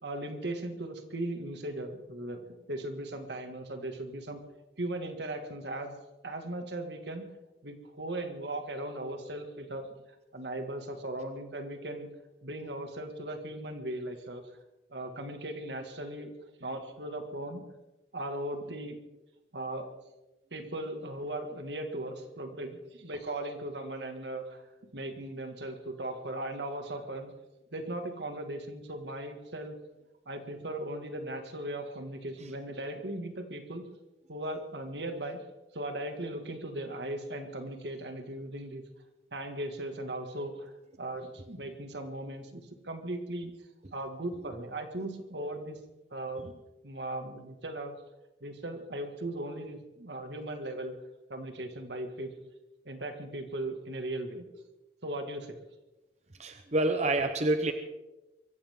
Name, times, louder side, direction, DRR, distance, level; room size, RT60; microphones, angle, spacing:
voice 1, 0.0-2.4 2.7-4.4 4.8-6.0 6.2-7.3 7.6-9.9 10.3-12.1 12.4-14.4 14.9-16.3 16.6-17.6 18.1-19.0 19.5-19.9 20.5-24.6 24.9-27.3 27.7-29.8 30.3-33.8 34.3-35.4 35.7-38.8 39.3-40.7 41.0-43.5 43.9-45.8 46.1-47.9 48.4-51.0 51.3-52.3 52.8-54.5 55.0-55.6, right 1 dB, 80° right, 5 dB, 2.2 m, -38 dB
voice 2, 56.4-57.7, right 2 dB, 40° right, 7 dB, 0.9 m, -27 dB
23.5 x 15.5 x 3.8 m, 1.0 s
head